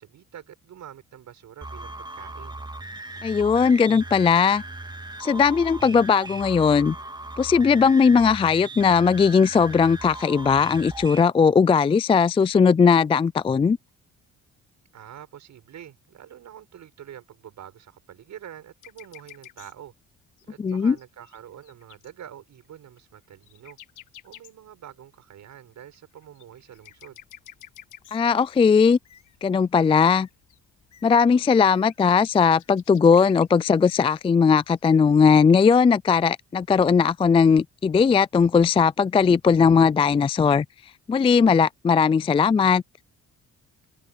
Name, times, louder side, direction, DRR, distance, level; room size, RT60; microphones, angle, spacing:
voice 1, 0.0-2.6 14.9-19.9 20.5-23.8 24.2-27.2, right 10 dB, 70° right, 7.5 m, -45 dB
sound 1, 1.6-11.2, right 2 dB, 15° right, 2.0 m, -38 dB
voice 2, 3.2-4.6 5.2-7.0 7.4-13.8 20.6-21.0 28.1-29.0 29.4-30.3 31.0-40.7 41.1-42.8, left 6 dB, 20° left, 0.3 m, -18 dB
sound 2, 18.8-19.9 20.4-22.1 22.6-22.7 23.0-23.1 23.2-25.0 25.7-28.4 29.1-29.2 29.8-29.9 30.0-30.6 31.0-31.4 31.7-33.5 33.8-33.9 34.1-34.2 34.4-34.5 34.8-34.9, left 14 dB, 85° left, 1.6 m, -49 dB
Bird, 26.5-35.6, left 9 dB, 65° left, 7.7 m, -60 dB
cardioid pair, 90°, 30 cm